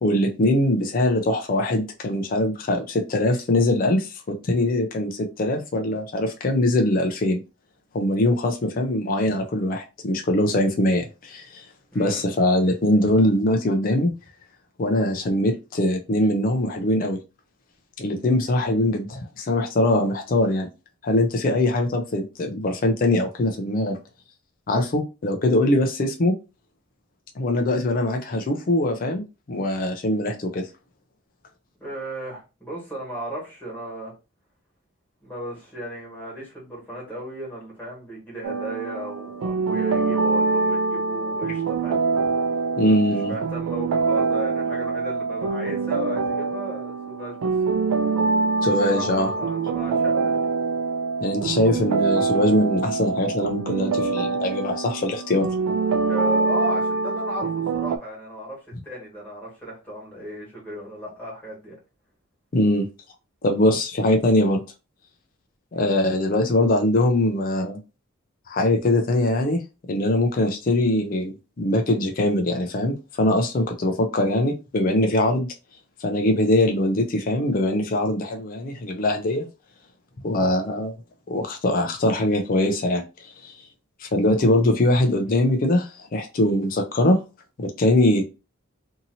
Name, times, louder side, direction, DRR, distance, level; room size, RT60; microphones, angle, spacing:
voice 1, 0.0-7.4 7.9-11.6 11.9-14.1 14.8-17.2 18.0-20.7 21.0-24.0 24.7-26.3 27.4-30.7 42.8-43.3 48.6-49.3 51.2-55.5 62.5-62.9 63.4-64.6 65.7-67.8 68.5-69.6 69.9-75.5 76.0-79.5 80.2-80.9 81.3-83.5 84.0-87.2 87.6-88.3, left 1 dB, 40° left, 3 dB, 0.4 m, -22 dB
voice 2, 11.9-12.4 31.8-34.1 35.2-42.0 43.0-47.5 48.6-50.4 56.0-61.8 65.7-66.0, right 1 dB, 10° left, -4 dB, 1.6 m, -35 dB
sound 1, 38.4-58.0, right 4 dB, 85° right, 0.3 m, -24 dB
2.7 x 2.7 x 2.6 m, 0.29 s
head